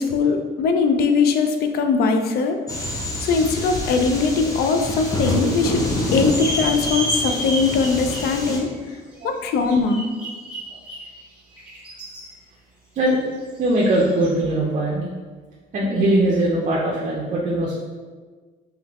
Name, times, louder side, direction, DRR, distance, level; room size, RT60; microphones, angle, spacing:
voice 1, 0.0-2.6 3.2-8.7 9.2-10.1, left 4 dB, 70° left, 6 dB, 0.5 m, -20 dB
sound 1, 2.7-8.6, equal, 20° left, 0.8 m, -26 dB
sound 2, 6.3-12.4 12.9-14.4, right 1 dB, 5° right, 1.1 m, -41 dB
voice 2, 13.6-15.1 15.7-17.7, right 1 dB, 45° right, -3 dB, 0.7 m, -21 dB
3.7 x 3.3 x 3.0 m, 1.4 s
cardioid pair, 110°, 17 cm